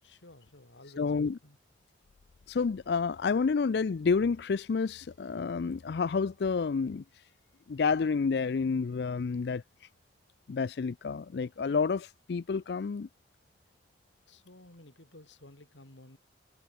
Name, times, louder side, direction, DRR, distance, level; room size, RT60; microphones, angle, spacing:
voice 1, 0.0-1.6 14.3-16.2, left 1 dB, 75° left, 3.2 m, -54 dB
voice 2, 1.0-1.4 2.5-7.0 7.7-9.9 10.5-13.1, left 5 dB, 60° left, 0.4 m, -29 dB
head